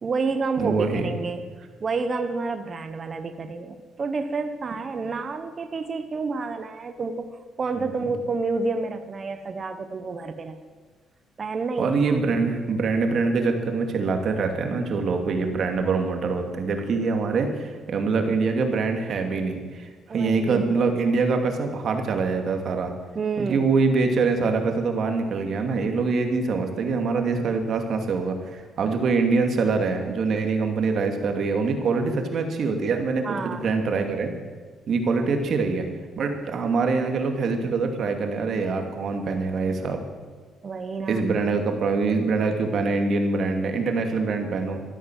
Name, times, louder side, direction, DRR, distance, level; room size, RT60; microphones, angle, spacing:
voice 1, 0.0-1.5 1.8-10.6 11.4-12.1 20.1-20.7 23.1-23.7 33.2-33.7 40.6-41.2, right 4 dB, 40° right, 8 dB, 1.1 m, -29 dB
voice 2, 0.6-1.1 7.8-7.9 11.8-22.9 23.4-34.3 34.9-35.8 36.2-40.0 41.1-44.8, right 4 dB, 60° right, 4 dB, 2.5 m, -24 dB
13.5 x 13.0 x 7.6 m, 1.5 s
cardioid pair, 90°, 0 cm